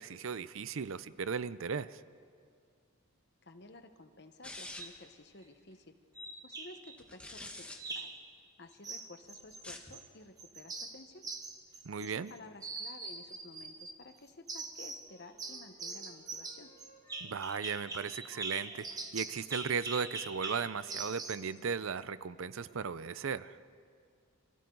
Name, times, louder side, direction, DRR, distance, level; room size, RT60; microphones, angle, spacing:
voice 1, 0.0-2.0 11.8-12.3 17.2-23.6, right 6 dB, 70° right, 16 dB, 0.5 m, -36 dB
voice 2, 3.4-8.1 8.6-11.3 12.0-16.7, left 2 dB, 50° left, 7 dB, 1.2 m, -53 dB
sound 1, 4.4-5.1 7.0-7.8 9.5-9.9, left 2 dB, 5° left, 1.2 m, -46 dB
sound 2, 4.7-5.0 6.2-7.0 7.8-8.2 8.8-10.1 10.4-12.3 12.6-14.0 14.5-15.1 15.4-21.5, right 3 dB, 15° right, 1.1 m, -42 dB
Wind instrument woodwind instrument, 15.0-18.0 18.3-21.6, left 2 dB, 25° left, 3.2 m, -62 dB
29.5 x 24.5 x 4.0 m, 2.2 s
head